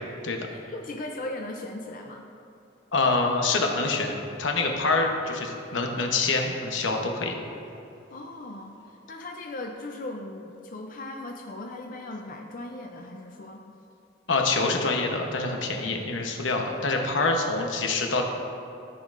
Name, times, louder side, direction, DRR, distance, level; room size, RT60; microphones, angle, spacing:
voice 1, 0.5-2.3 8.1-13.7, left 2 dB, 45° left, 2 dB, 0.4 m, -38 dB
voice 2, 2.9-4.1 4.4-7.3 14.3-18.2, left 3 dB, 80° left, 2 dB, 0.9 m, -26 dB
14.0 x 5.3 x 2.5 m, 2.8 s
head